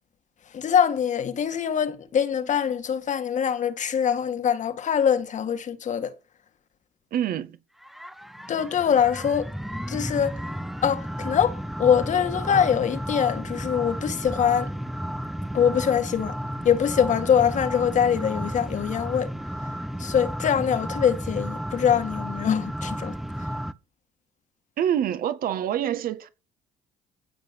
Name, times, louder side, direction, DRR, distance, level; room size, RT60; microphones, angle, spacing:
voice 1, 0.5-6.1 8.5-9.5 9.9-10.4 10.8-14.7 15.5-16.4 16.6-19.3 20.0-23.2, left 8 dB, 50° left, 1.9 m, -23 dB
voice 2, 7.1-7.6 24.8-26.3, right 10 dB, 65° right, 1.9 m, -26 dB
sound 1, 7.8-23.7, equal, ahead, 0.8 m, -33 dB
15.5 x 5.4 x 7.0 m
supercardioid pair, 85°, 16 cm